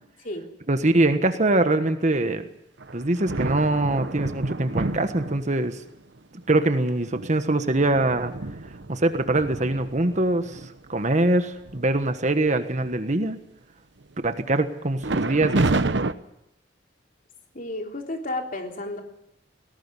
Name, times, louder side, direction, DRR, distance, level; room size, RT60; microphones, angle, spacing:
voice 1, 0.7-2.5 2.9-5.8 6.5-8.3 8.9-10.6 10.9-13.4 14.2-15.8, right 2 dB, 40° right, 8 dB, 1.4 m, -23 dB
sound 1, 2.8-5.8 6.5-6.6 7.1-10.7 11.2-11.3 11.7-12.1 12.4-13.2 15.0-16.1, right 2 dB, 75° right, 1.0 m, -29 dB
voice 2, 17.5-19.0, left 2 dB, 50° left, 3 dB, 3.4 m, -32 dB
19.0 x 18.0 x 9.8 m, 0.80 s
head